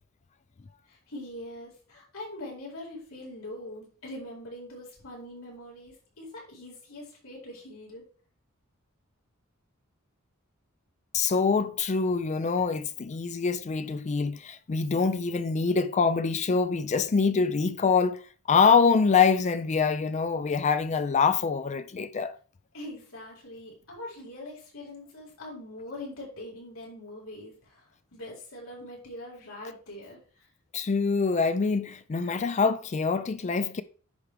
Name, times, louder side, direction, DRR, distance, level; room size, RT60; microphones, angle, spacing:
voice 1, 0.9-8.0 22.7-30.5, left 1 dB, 90° left, 4.6 m, -43 dB
voice 2, 11.1-18.2 18.5-22.4 30.7-33.8, left 5 dB, 35° left, 0.4 m, -25 dB
10.5 x 5.0 x 3.4 m
head